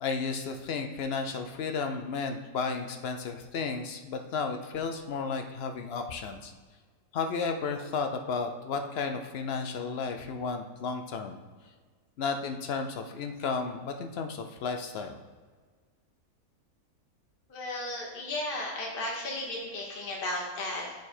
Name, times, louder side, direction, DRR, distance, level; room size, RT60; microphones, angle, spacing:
voice 1, 0.0-6.5 7.1-11.4 12.2-15.2, left 5 dB, 60° left, 5 dB, 0.6 m, -33 dB
voice 2, 17.5-20.9, left 1 dB, 40° left, -3 dB, 1.1 m, -34 dB
6.7 x 4.7 x 4.3 m, 1.5 s
omnidirectional pair, 1.5 m